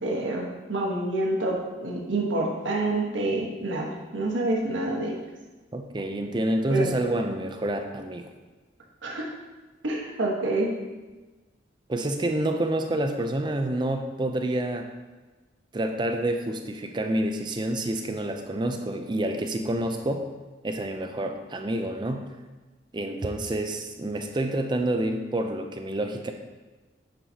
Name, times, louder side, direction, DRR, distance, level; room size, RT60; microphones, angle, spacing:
voice 1, 0.0-5.1 6.7-6.9 9.0-9.3 9.8-10.7, right 2 dB, 90° right, -2 dB, 1.2 m, -27 dB
voice 2, 5.7-8.3 11.9-14.9 15.7-20.3 20.6-22.3 22.9-26.3, right 1 dB, 25° right, 5 dB, 0.4 m, -28 dB
8.9 x 4.7 x 2.8 m, 1.2 s
head